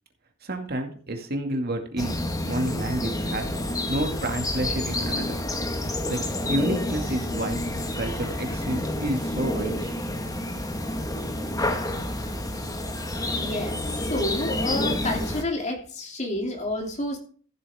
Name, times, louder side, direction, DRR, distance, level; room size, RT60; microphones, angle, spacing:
voice 1, 0.4-2.2 2.5-3.5 3.9-5.4 6.1-6.2 6.5-7.6 8.0-10.2, right 1 dB, 50° right, 2.2 m, -29 dB
sound 1, 2.0-15.4, left 1 dB, 20° left, 1.6 m, -29 dB
voice 2, 13.3-17.2, left 1 dB, 35° left, 2.8 m, -29 dB
14.5 x 8.0 x 3.6 m
head